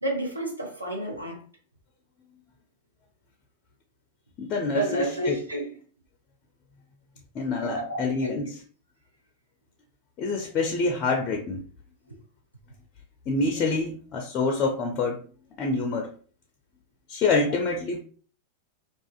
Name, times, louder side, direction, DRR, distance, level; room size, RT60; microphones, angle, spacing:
voice 1, 0.0-1.4 4.6-5.7 7.6-8.4, right 1 dB, 85° right, 0.7 m, -30 dB
voice 2, 4.4-5.4 7.3-8.6 10.2-11.6 13.3-15.2 15.6-16.1 17.1-18.0, left 3 dB, 35° left, 0.4 m, -26 dB
2.5 x 2.4 x 2.3 m
figure-of-eight pair, 90°, 0 cm